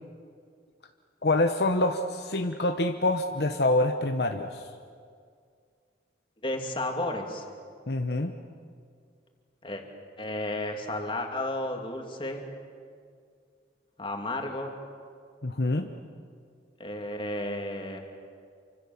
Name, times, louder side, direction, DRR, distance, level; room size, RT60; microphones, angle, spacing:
voice 1, 1.2-4.6 7.9-8.3 15.4-15.9, left 2 dB, 60° left, 5 dB, 1.1 m, -26 dB
voice 2, 6.4-7.4 9.6-9.8 10.2-12.4 14.0-14.8 16.8-18.0, left 1 dB, 30° left, 3 dB, 2.8 m, -32 dB
28.5 x 25.0 x 7.3 m, 2.2 s
head